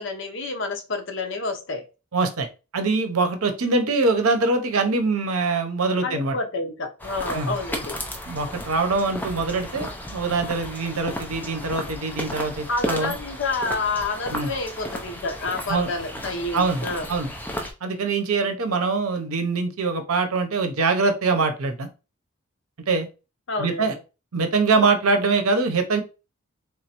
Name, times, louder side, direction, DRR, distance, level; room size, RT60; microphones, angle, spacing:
voice 1, 0.0-1.8 6.0-8.0 12.7-17.1 23.5-24.0, left 3 dB, 60° left, 4 dB, 0.7 m, -29 dB
voice 2, 2.1-2.5 2.7-6.4 7.3-7.6 8.3-13.1 14.3-14.5 15.7-15.9 16.5-17.3 17.8-21.9 22.9-23.1 23.6-23.9 24.3-26.0, right 3 dB, 85° right, 7 dB, 0.7 m, -23 dB
sound 1, 7.0-17.7, left 1 dB, 10° left, 0.5 m, -34 dB
3.6 x 3.1 x 2.9 m, 0.30 s
head